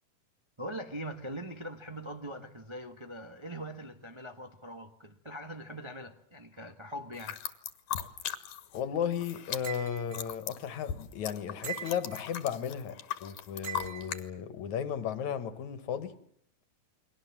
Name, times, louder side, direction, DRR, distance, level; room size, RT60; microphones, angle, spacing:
voice 1, 0.6-7.5, equal, 30° right, 0.5 m, -42 dB
sound 1, 7.1-8.8 9.1-14.2, left 10 dB, 90° left, 3.1 m, -39 dB
voice 2, 8.7-16.1, left 8 dB, 70° left, 2.8 m, -35 dB
sound 2, 9.6-10.2 11.6-12.3 13.6-14.2, right 9 dB, 70° right, 0.7 m, -41 dB
29.5 x 22.0 x 7.5 m
omnidirectional pair, 3.6 m